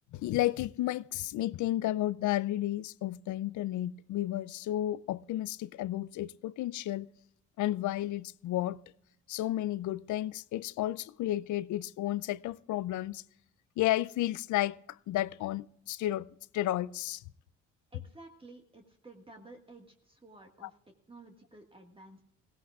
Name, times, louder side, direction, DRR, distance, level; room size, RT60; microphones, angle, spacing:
voice 1, 0.1-7.1 7.6-8.8 9.3-13.2 13.8-14.8 15.1-17.2 20.6-20.7, left 14 dB, 75° left, 0.5 m, -32 dB
voice 2, 17.9-20.8 21.1-22.2, right 2 dB, 20° right, 1.7 m, -53 dB
19.5 x 17.0 x 2.4 m
cardioid pair, 90°, 30 cm